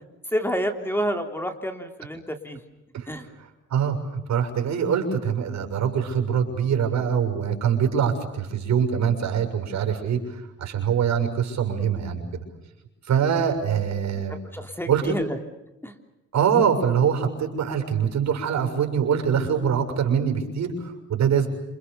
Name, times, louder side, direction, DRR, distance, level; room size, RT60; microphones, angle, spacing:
voice 1, 0.3-2.6 3.1-3.3 13.2-13.6 14.5-15.4 15.8-15.9, equal, 5° left, 5 dB, 3.4 m, -29 dB
voice 2, 3.7-12.4 13.1-14.3 14.9-15.2 16.3-21.5, right 7 dB, 65° right, 5 dB, 6.6 m, -24 dB
28.5 x 27.5 x 7.0 m, 0.96 s
cardioid pair, 90°, 30 cm